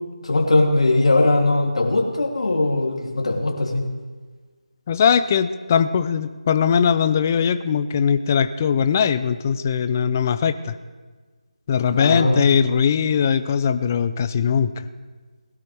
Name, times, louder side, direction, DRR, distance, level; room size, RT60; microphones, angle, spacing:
voice 1, 0.2-3.8 11.9-12.4, left 2 dB, 60° left, 0 dB, 3.2 m, -19 dB
voice 2, 4.9-10.7 11.7-14.9, left 7 dB, 20° left, 12 dB, 0.5 m, -20 dB
20.5 x 12.0 x 3.5 m, 1.4 s
figure-of-eight pair, 165°, 4 cm